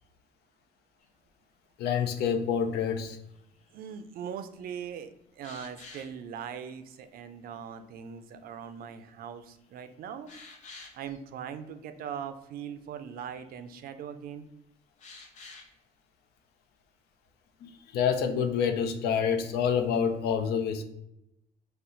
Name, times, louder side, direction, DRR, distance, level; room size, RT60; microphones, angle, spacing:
sound 1, 1.0-1.1 3.3-4.0 5.4-6.2 9.1-9.2 9.6-9.7 10.3-11.2 12.8-12.9 13.1-13.5 15.0-15.7 19.1-19.4, left 3 dB, 45° left, 0.8 m, -49 dB
voice 1, 1.8-3.2 17.6-20.8, left 7 dB, 75° left, 7 dB, 0.5 m, -27 dB
voice 2, 3.7-10.3 10.9-14.4, right 8 dB, 60° right, 9 dB, 0.4 m, -40 dB
4.2 x 2.1 x 3.7 m, 0.82 s
cardioid pair, 110°, 17 cm